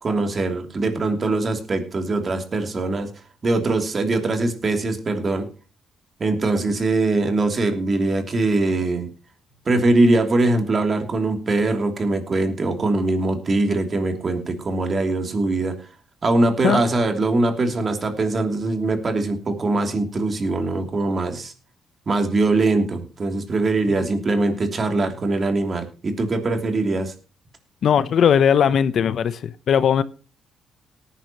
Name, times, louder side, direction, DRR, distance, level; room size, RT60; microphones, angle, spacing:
voice 1, 0.0-3.1 3.4-5.5 6.2-9.1 9.7-15.8 16.2-21.5 22.1-27.1, right 2 dB, 40° right, 3.0 m, -22 dB
voice 2, 27.8-30.0, left 8 dB, 60° left, 0.8 m, -18 dB
18.5 x 10.0 x 3.0 m
cardioid pair, 90°, 0 cm